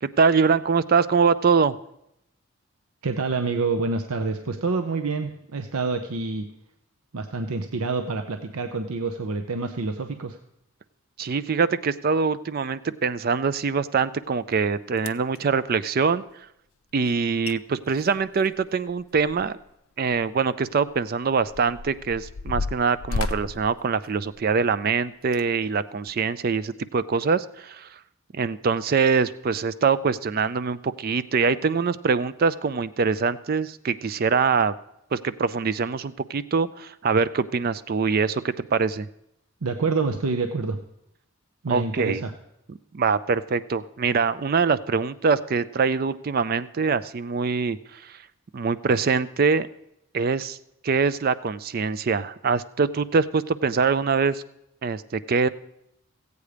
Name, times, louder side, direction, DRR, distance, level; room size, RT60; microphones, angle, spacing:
voice 1, 0.0-1.8 11.2-16.2 16.9-19.6 20.0-28.0 28.3-34.7 35.1-39.1 41.7-42.2 42.9-48.2 48.5-49.7 50.1-50.6 50.8-54.4 54.8-55.5, right 5 dB, 40° right, 16 dB, 0.4 m, -24 dB
voice 2, 3.0-6.4 7.1-10.4 39.6-40.8 41.6-42.3, right 4 dB, 80° right, 6 dB, 0.7 m, -27 dB
sound 1, 14.5-14.6 15.0-15.4 17.1-17.2 17.4-17.6 17.9-19.7 20.0-20.2 20.9-24.6 25.2-25.5 26.1-26.2, left 3 dB, 65° left, 0.5 m, -33 dB
16.0 x 8.2 x 5.0 m, 0.82 s
head